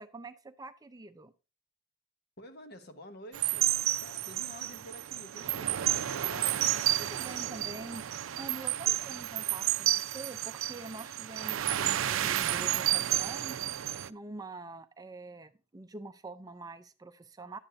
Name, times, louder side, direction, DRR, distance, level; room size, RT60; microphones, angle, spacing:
voice 1, 0.0-1.3 6.2-6.3 7.0-17.6, right 2 dB, 20° right, 0.5 m, -45 dB
voice 2, 2.4-6.8, left 1 dB, 55° left, 1.2 m, -50 dB
sound 1, 3.3-14.1, right 13 dB, 85° right, 0.4 m, -31 dB
10.5 x 8.5 x 2.5 m
head